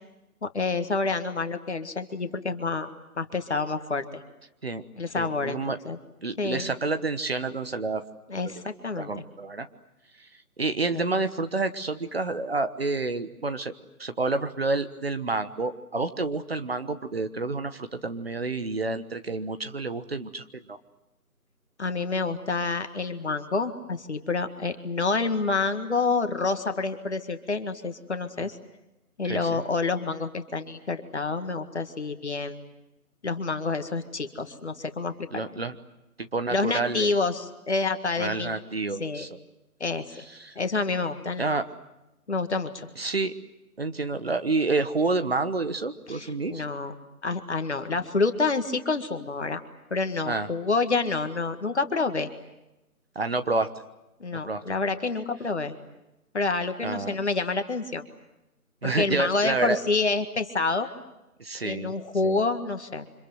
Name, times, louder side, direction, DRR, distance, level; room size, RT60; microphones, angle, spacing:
voice 1, 0.4-4.2 5.0-6.0 6.4-6.7 8.3-9.2 10.9-11.0 21.8-28.6 29.2-32.6 33.2-35.4 36.5-38.6 39.0-39.3 39.8-40.1 40.6-41.4 42.3-42.9 46.1-46.9 47.2-49.6 49.9-52.3 54.2-55.8 56.3-58.1 58.8-60.9 61.6-63.1, left 3 dB, 45° left, 8 dB, 1.9 m, -28 dB
voice 2, 5.2-5.8 6.2-8.0 9.0-9.7 10.6-13.7 14.0-20.8 28.4-28.5 29.3-29.6 35.3-35.8 36.2-37.1 38.2-39.3 40.4-40.5 41.4-41.6 43.0-43.3 43.8-46.6 50.2-50.5 53.1-53.7 54.3-54.6 56.8-57.1 58.8-59.8 61.4-61.9 62.2-62.4, right 3 dB, 40° right, 10 dB, 1.3 m, -29 dB
29.0 x 26.0 x 7.9 m, 0.95 s
figure-of-eight pair, 165°, 46 cm